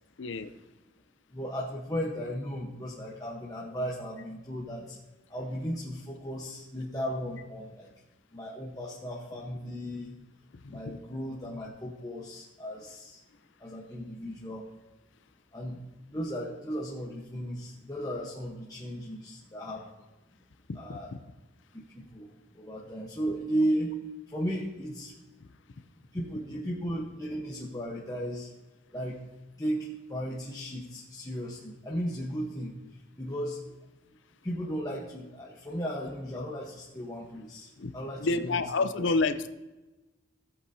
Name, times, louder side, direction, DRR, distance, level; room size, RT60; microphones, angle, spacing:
voice 1, 0.2-0.6 10.6-10.9 20.7-21.2 25.4-25.5 37.8-37.9 38.2-39.5, left 3 dB, 65° left, 11 dB, 0.6 m, -29 dB
voice 2, 1.3-5.0 5.3-7.9 8.3-10.2 10.7-13.2 13.6-14.7 15.5-15.8 16.1-20.0 20.8-21.1 21.7-24.0 24.3-25.1 26.1-28.5 28.9-29.2 29.6-32.7 33.2-33.8 34.4-38.6, equal, 20° left, -4 dB, 1.0 m, -35 dB
16.5 x 8.1 x 2.7 m, 1.1 s
head